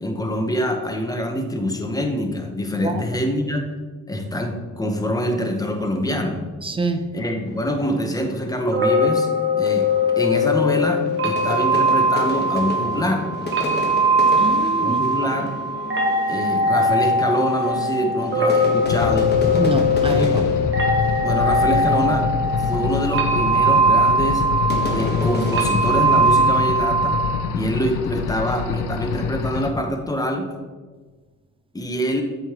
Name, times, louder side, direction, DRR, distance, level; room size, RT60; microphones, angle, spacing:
voice 1, 0.0-3.7 4.1-6.4 7.1-9.3 9.6-9.9 10.2-13.3 14.8-15.5 16.3-19.3 20.1-20.5 21.2-22.3 22.6-24.4 24.9-27.2 27.5-30.5 31.7-32.2, equal, 10° left, 1.0 m, -25 dB
voice 2, 6.6-7.0 14.4-15.0 19.6-20.5, right 3 dB, 20° right, 0.5 m, -25 dB
sound 1, 7.4-26.4, left 2 dB, 35° left, 1.2 m, -33 dB
sound 2, 8.7-27.4, equal, 40° right, 1.1 m, -20 dB
sound 3, 18.9-29.7, left 6 dB, 85° left, 0.6 m, -26 dB
7.5 x 4.9 x 3.0 m
cardioid pair, 90°, 30 cm